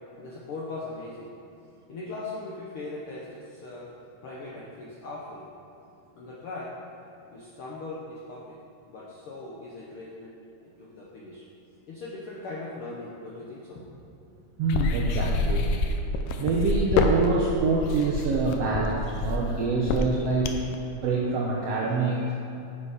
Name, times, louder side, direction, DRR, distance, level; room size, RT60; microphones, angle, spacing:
voice 1, 0.2-1.3 1.9-3.9 4.2-5.5 6.2-6.7 7.3-8.6 8.9-10.3 10.8-11.4 11.9-14.0, left 2 dB, 75° left, -5 dB, 1.2 m, -39 dB
voice 2, 14.6-15.7 16.4-20.5 21.0-22.3, right 3 dB, 80° right, -3 dB, 1.4 m, -26 dB
sound 1, 14.7-20.8, left 3 dB, 90° left, 2.3 m, -27 dB
8.7 x 6.8 x 5.1 m, 2.7 s
omnidirectional pair, 3.7 m